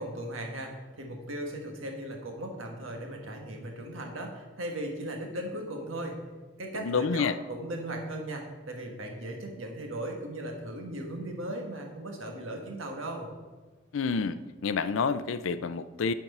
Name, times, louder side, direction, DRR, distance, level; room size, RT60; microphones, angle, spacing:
voice 1, 0.0-6.2 6.6-13.3, right 1 dB, 75° right, 2 dB, 1.5 m, -37 dB
voice 2, 6.8-7.4 13.9-16.1, left 5 dB, 75° left, 14 dB, 0.4 m, -29 dB
10.5 x 4.5 x 5.4 m, 1.3 s
head